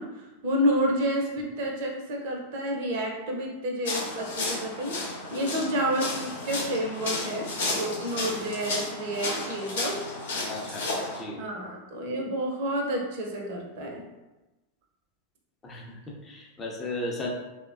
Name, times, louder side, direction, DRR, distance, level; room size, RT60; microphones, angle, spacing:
voice 1, 0.0-5.0 5.3-10.0 11.4-14.1, equal, 50° right, 0 dB, 0.6 m, -30 dB
sound 1, 3.8-11.2, left 2 dB, 60° left, 0.8 m, -32 dB
voice 2, 10.5-10.9 11.1-11.4 15.6-17.3, left 2 dB, 20° left, -1 dB, 0.6 m, -35 dB
3.2 x 2.1 x 2.4 m, 1.1 s
figure-of-eight pair, 90°, 0 cm